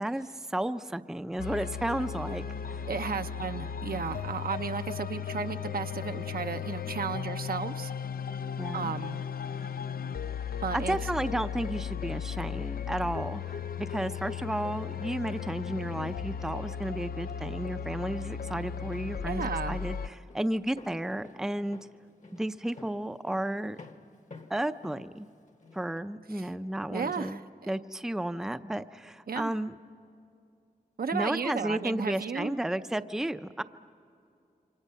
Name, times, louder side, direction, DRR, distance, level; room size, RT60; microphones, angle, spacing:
voice 1, 0.0-2.8 8.6-9.0 10.7-21.8 22.3-23.8 24.5-25.3 25.7-27.4 27.7-29.8 31.1-33.6, right 1 dB, 5° right, 10 dB, 0.5 m, -33 dB
sound 1, 1.4-20.1, left 7 dB, 70° left, 0.5 m, -36 dB
voice 2, 2.9-7.9 8.7-9.2 10.6-11.0 19.2-19.8 26.3-26.5 26.9-27.7 29.3-29.5 31.0-32.5, right 6 dB, 75° right, 8 dB, 0.8 m, -34 dB
Walk footsteps, 18.7-25.9, left 3 dB, 50° left, 1.2 m, -52 dB
28.5 x 25.0 x 5.6 m, 2.4 s
wide cardioid pair, 115°, 16 cm